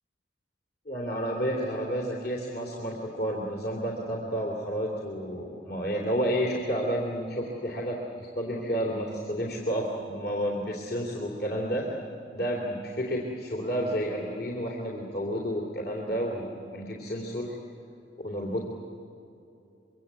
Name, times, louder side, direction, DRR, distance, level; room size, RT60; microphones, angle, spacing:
voice 1, 0.8-11.9 12.3-17.5 18.2-18.6, equal, 60° left, -2 dB, 3.1 m, -31 dB
25.0 x 23.5 x 8.3 m, 2.7 s
head